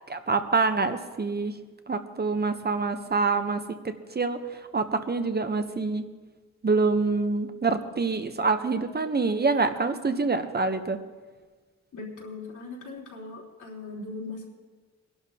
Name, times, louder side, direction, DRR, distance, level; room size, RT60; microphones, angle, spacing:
voice 1, 0.1-1.6 1.9-6.1 6.6-11.0, right 4 dB, 35° right, 8 dB, 0.8 m, -26 dB
voice 2, 11.9-14.5, left 3 dB, 90° left, -4 dB, 3.6 m, -39 dB
24.5 x 11.5 x 2.8 m, 1.3 s
wide cardioid pair, 125°, 29 cm